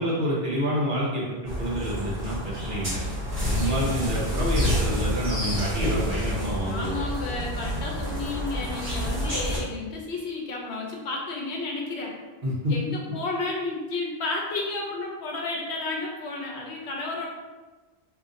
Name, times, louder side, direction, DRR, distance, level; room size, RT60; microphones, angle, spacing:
voice 1, 0.0-3.0 3.4-6.9 12.4-12.7, equal, 55° right, -6 dB, 1.0 m, -28 dB
sound 1, 1.4-9.6, equal, 35° right, 1.3 m, -28 dB
voice 2, 6.6-12.2 12.7-17.3, left 3 dB, 85° left, -1 dB, 1.0 m, -32 dB
2.8 x 2.5 x 3.7 m, 1.2 s
omnidirectional pair, 1.1 m